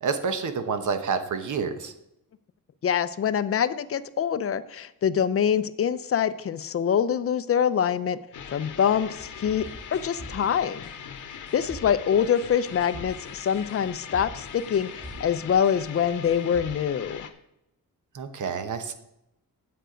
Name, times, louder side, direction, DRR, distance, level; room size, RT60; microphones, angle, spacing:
voice 1, 0.0-1.9 18.1-18.9, right 5 dB, 55° right, 9 dB, 1.0 m, -28 dB
voice 2, 2.8-8.2 8.5-10.8 11.3-17.3, left 8 dB, 40° left, 14 dB, 0.4 m, -25 dB
sound 1, 8.3-17.3, left 7 dB, 55° left, 0.9 m, -41 dB
sound 2, 9.2-10.4 10.8-10.9 11.5-11.9 12.3-15.2 15.6-15.7 16.2-16.7, right 1 dB, 30° right, 4.2 m, -43 dB
9.1 x 7.6 x 5.0 m, 0.84 s
wide cardioid pair, 165°, 35 cm